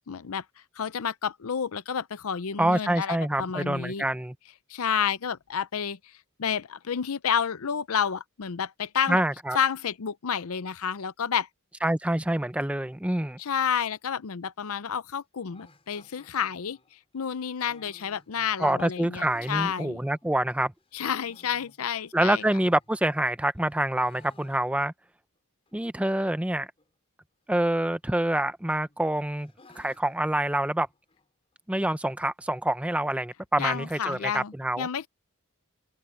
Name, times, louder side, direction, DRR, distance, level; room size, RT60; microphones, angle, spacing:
voice 1, 0.1-0.4 0.8-4.0 4.7-6.0 6.4-9.2 9.5-11.5 13.4-16.8 17.1-20.0 20.9-22.4 33.6-35.1, left 7 dB, 75° left, 0.6 m, -30 dB
voice 2, 2.6-4.3 9.1-9.6 11.8-13.4 18.6-20.7 22.1-24.9 25.7-26.7 27.5-30.9 31.7-34.9, right 1 dB, 5° right, 0.5 m, -26 dB
sound 1, 15.5-20.5 20.9-23.2 23.5-25.1 25.3-25.4 25.7-25.8 26.4-26.8 27.9-28.5 28.8-31.3, left 2 dB, 25° left, 5.0 m, -58 dB
open air
head